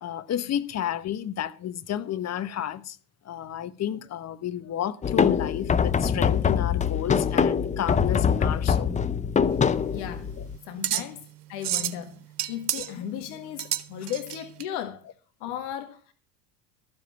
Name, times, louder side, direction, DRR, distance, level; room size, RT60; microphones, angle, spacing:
voice 1, 0.0-3.0 3.2-9.1 10.4-10.5 13.0-13.1 14.0-14.1, left 10 dB, 35° left, 1.0 m, -31 dB
sound 1, 5.0-10.6, left 7 dB, 15° left, 0.6 m, -24 dB
sound 2, 9.5-14.6, right 11 dB, 80° right, 1.0 m, -32 dB
voice 2, 9.9-10.3 10.6-15.0 15.4-16.1, left 10 dB, 60° left, 1.6 m, -36 dB
13.0 x 7.6 x 5.8 m
hypercardioid pair, 75°, 46 cm